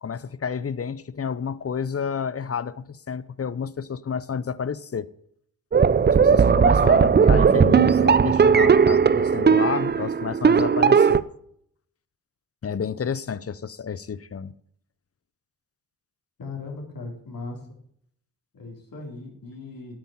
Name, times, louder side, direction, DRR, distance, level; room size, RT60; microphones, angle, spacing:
voice 1, 0.0-5.1 6.1-11.2 12.6-14.5, left 6 dB, 35° left, 0.8 m, -30 dB
sound 1, 5.7-11.2, right 6 dB, 25° right, 0.5 m, -17 dB
voice 2, 16.4-17.6 18.5-20.0, left 3 dB, 55° left, 3.7 m, -38 dB
9.2 x 8.9 x 7.3 m
supercardioid pair, 45°, 40 cm